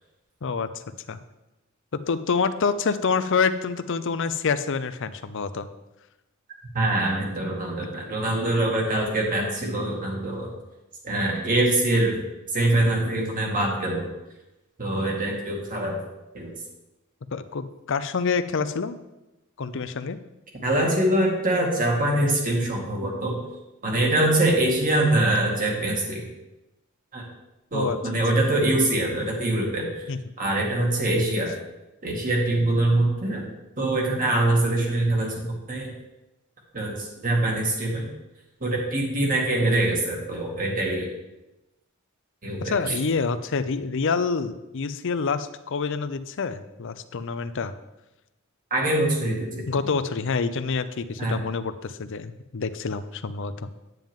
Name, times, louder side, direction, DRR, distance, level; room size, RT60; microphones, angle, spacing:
voice 1, 2.1-5.7 17.3-19.0 19.6-20.2 27.7-28.0 30.1-30.2 42.6-47.7 49.7-53.7, left 5 dB, 60° left, 12 dB, 0.6 m, -27 dB
voice 2, 6.7-10.5 11.0-12.2 12.5-14.1 14.8-16.0 16.3-16.5 20.6-23.4 23.8-26.2 27.1-27.2 27.7-30.0 30.4-31.5 32.0-33.4 33.8-35.9 36.7-38.1 38.6-41.1 42.4-43.0 48.7-49.7 51.2-51.4, right 1 dB, 40° right, -1 dB, 2.2 m, -24 dB
9.2 x 9.1 x 3.7 m, 1.0 s
head